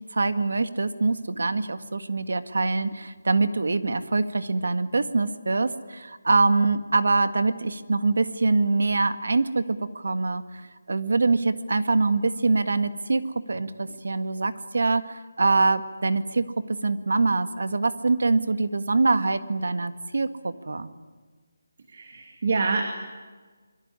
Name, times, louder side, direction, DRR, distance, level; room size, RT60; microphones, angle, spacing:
voice 1, 0.1-10.4 10.9-13.2 13.5-15.0 15.4-16.5 16.8-20.9, right 3 dB, 70° right, 11 dB, 1.9 m, -24 dB
voice 2, 21.9-22.8, right 4 dB, 40° right, 4 dB, 2.5 m, -26 dB
25.5 x 23.5 x 9.8 m, 1.4 s
hypercardioid pair, 175°, 0 cm